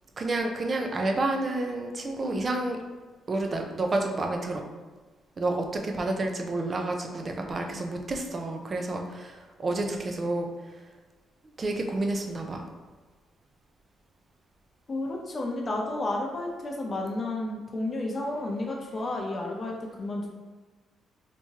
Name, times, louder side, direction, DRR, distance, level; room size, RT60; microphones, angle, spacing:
voice 1, 0.2-2.8 3.3-4.6 5.4-10.5 11.6-12.7, right 2 dB, 35° right, 3 dB, 0.5 m, -29 dB
voice 2, 14.9-20.3, left 2 dB, 35° left, 0 dB, 0.7 m, -31 dB
3.4 x 2.9 x 2.8 m, 1.3 s
cardioid pair, 90°, 0 cm